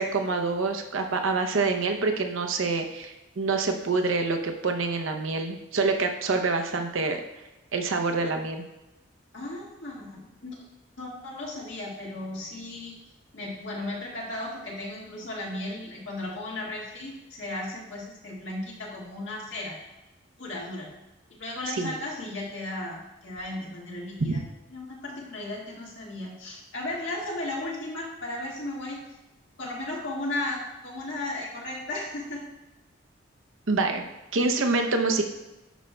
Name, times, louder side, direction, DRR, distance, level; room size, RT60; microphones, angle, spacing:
voice 1, 0.0-7.2 7.7-8.6 21.7-21.9 24.3-24.4 33.7-34.0 34.3-35.2, right 3 dB, 85° right, 4 dB, 0.7 m, -26 dB
voice 2, 9.3-10.5 11.0-13.0 13.3-19.8 20.4-20.9 21.3-24.4 24.7-29.0 29.6-32.4, left 2 dB, 70° left, -3 dB, 1.8 m, -35 dB
11.0 x 5.1 x 2.3 m, 1.0 s
head